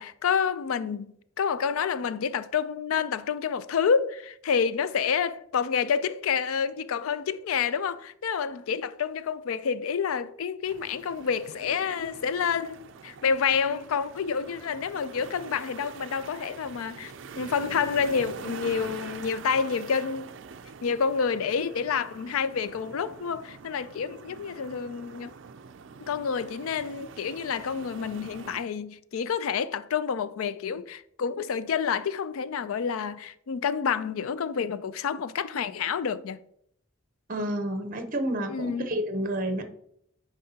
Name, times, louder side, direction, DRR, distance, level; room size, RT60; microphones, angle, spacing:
voice 1, 0.0-12.8 13.0-20.3 20.8-25.3 26.1-36.4 38.5-38.9, left 6 dB, 80° left, 0.4 m, -28 dB
sound 1, 10.6-28.6, right 5 dB, 60° right, 0.4 m, -45 dB
voice 2, 37.3-39.6, right 1 dB, 40° right, 0.7 m, -30 dB
10.0 x 4.7 x 2.8 m
head